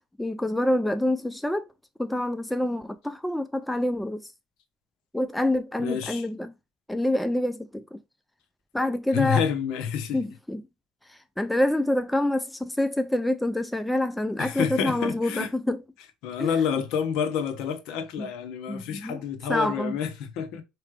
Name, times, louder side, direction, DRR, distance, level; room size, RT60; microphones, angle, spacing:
voice 1, 0.2-1.6 2.0-4.3 5.1-6.5 6.9-8.0 8.7-9.4 10.1-10.6 11.1-15.8 16.4-16.6 18.2-18.3 18.7-19.9, left 1 dB, 5° left, 0.3 m, -27 dB
voice 2, 5.8-6.2 9.1-10.2 14.4-15.5 16.2-20.6, left 7 dB, 65° left, 1.0 m, -28 dB
4.8 x 3.2 x 3.2 m
cardioid pair, 145°, 0 cm